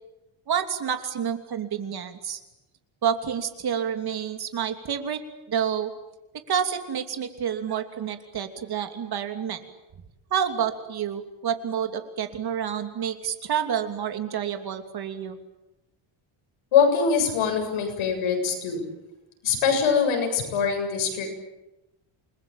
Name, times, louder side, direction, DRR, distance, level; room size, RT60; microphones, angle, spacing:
voice 1, 0.5-2.4 3.0-5.2 5.5-5.9 6.5-9.6 10.3-15.4, right 8 dB, 50° right, 7 dB, 3.1 m, -29 dB
voice 2, 16.7-18.8 19.4-21.3, left 6 dB, 80° left, 4 dB, 7.9 m, -23 dB
29.0 x 21.5 x 9.2 m, 0.97 s
cardioid pair, 140°, 48 cm